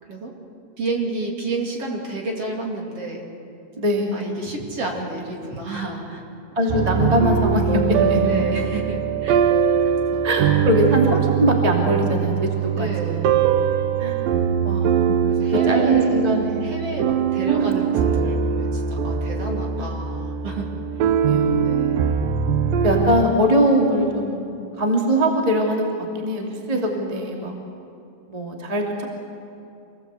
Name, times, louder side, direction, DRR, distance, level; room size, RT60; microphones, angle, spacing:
voice 1, 0.8-3.2 4.1-6.2 8.3-9.4 10.1-10.2 12.8-13.3 15.3-16.2 16.6-20.7 21.0-21.1 21.6-22.0, right 2 dB, 40° right, 0 dB, 3.0 m, -30 dB
voice 2, 3.8-4.2 6.5-8.4 10.2-13.3 14.0-14.2 14.6-15.2 15.7-16.6 17.4-17.8 19.8-19.9 21.3-21.7 22.8-27.6 28.3-29.0, equal, 15° right, 1 dB, 1.4 m, -22 dB
sound 1, 6.7-23.3, right 8 dB, 80° right, 2.1 m, -22 dB
26.5 x 19.5 x 8.2 m, 2.7 s
omnidirectional pair, 5.1 m